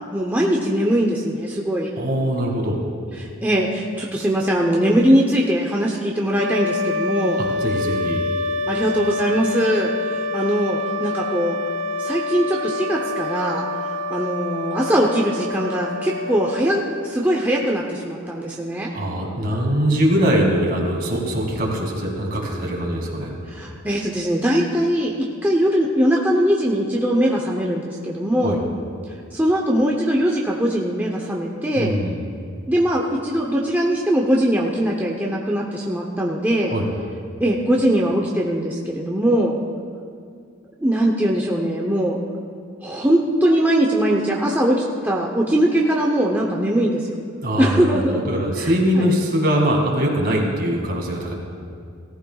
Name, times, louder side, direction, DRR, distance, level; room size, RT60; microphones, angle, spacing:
voice 1, 0.1-1.9 3.2-7.4 8.7-11.6 12.0-13.7 14.1-18.9 23.5-25.1 25.4-28.6 29.3-32.0 32.7-36.7 37.4-39.6 40.8-42.2 42.8-47.1 47.6-48.2 48.6-49.1, equal, 10° right, -2 dB, 0.7 m, -21 dB
voice 2, 2.0-2.9 7.4-8.2 18.9-23.4 28.4-28.6 31.8-32.2 36.7-36.9 47.4-51.3, equal, 45° right, 0 dB, 2.2 m, -22 dB
sound 1, 6.3-17.2, left 2 dB, 80° right, 0.5 m, -27 dB
18.0 x 14.5 x 2.3 m, 2.3 s
head